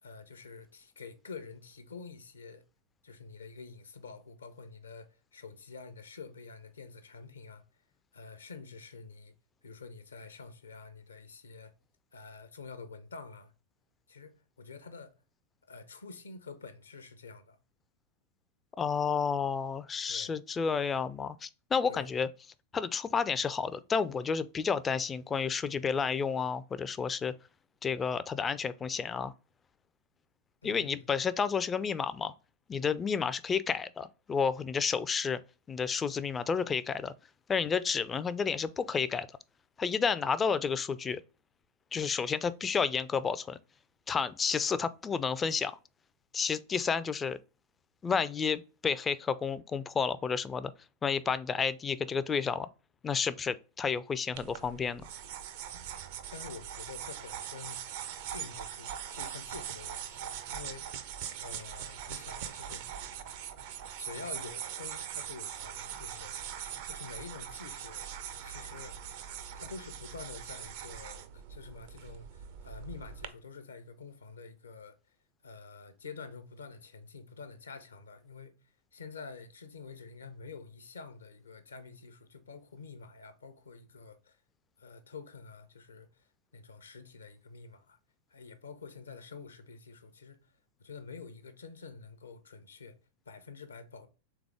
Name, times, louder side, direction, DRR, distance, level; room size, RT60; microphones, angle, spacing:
voice 1, 0.0-2.6 3.0-7.6 8.1-9.3 9.6-11.7 12.1-13.5 14.1-15.1 15.6-17.6 20.1-20.3 21.9-22.1 30.6-31.0 56.3-57.8 58.3-61.0 61.4-62.9 64.0-66.4 66.8-69.2 69.5-75.0 75.4-78.5 78.9-84.4 84.8-86.3 86.5-88.0 88.3-90.5 90.8-93.0 93.3-94.1, left 4 dB, 70° left, 0.6 m, -48 dB
voice 2, 18.8-22.3 22.7-27.3 27.8-29.3 30.6-32.3 32.7-35.4 35.7-37.1 37.5-39.3 39.8-41.2 41.9-43.6 44.1-45.8 46.3-47.4 48.0-50.7 51.0-52.7 53.0-55.1, left 6 dB, 20° left, 0.3 m, -31 dB
sound 1, 54.4-73.3, right 9 dB, 50° right, 0.5 m, -42 dB
3.5 x 3.5 x 3.3 m
figure-of-eight pair, 90°, 0 cm